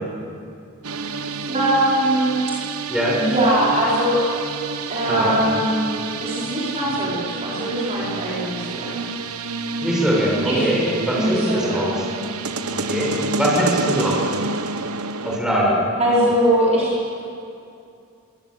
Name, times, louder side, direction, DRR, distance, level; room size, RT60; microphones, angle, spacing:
sound 1, 0.8-15.4, right 4 dB, 85° right, 1.1 m, -29 dB
voice 1, 1.5-2.6 3.2-4.2 4.9-9.1 10.5-10.7 11.1-11.8 16.0-16.9, right 1 dB, 30° right, -7 dB, 4.7 m, -21 dB
voice 2, 5.1-5.4 9.8-11.9 12.7-14.2 15.2-15.8, equal, 5° right, -4 dB, 6.5 m, -22 dB
22.5 x 18.5 x 8.1 m, 2.5 s
head